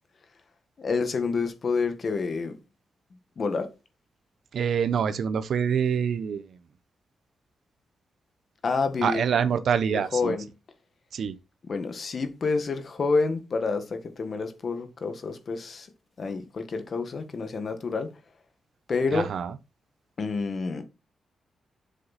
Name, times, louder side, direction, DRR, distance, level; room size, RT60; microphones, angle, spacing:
voice 1, 0.8-2.6 3.4-3.7 8.6-9.2 9.9-10.4 11.7-15.9 16.2-18.1 18.9-19.3 20.2-20.8, left 4 dB, 40° left, 1.6 m, -28 dB
voice 2, 4.5-6.6 9.0-10.3 11.1-11.4 19.1-19.6, right 7 dB, 65° right, 0.8 m, -26 dB
7.6 x 6.6 x 4.1 m
wide cardioid pair, 150°, 0 cm